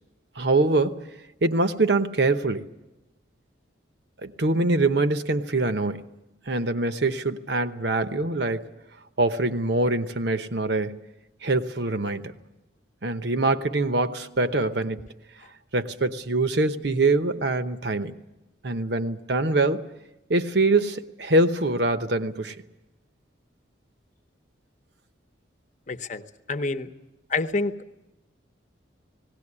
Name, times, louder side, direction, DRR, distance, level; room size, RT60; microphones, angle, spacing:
voice 1, 0.4-1.1 1.4-2.7 4.2-6.1 6.5-8.7 9.2-11.0 11.4-12.3 13.0-15.0 15.7-18.1 18.6-19.8 20.3-22.6, right 2 dB, 60° right, 10 dB, 0.9 m, -24 dB
voice 2, 25.9-26.9 27.3-27.7, left 3 dB, 40° left, 9 dB, 0.9 m, -28 dB
18.5 x 17.5 x 9.8 m, 0.99 s
head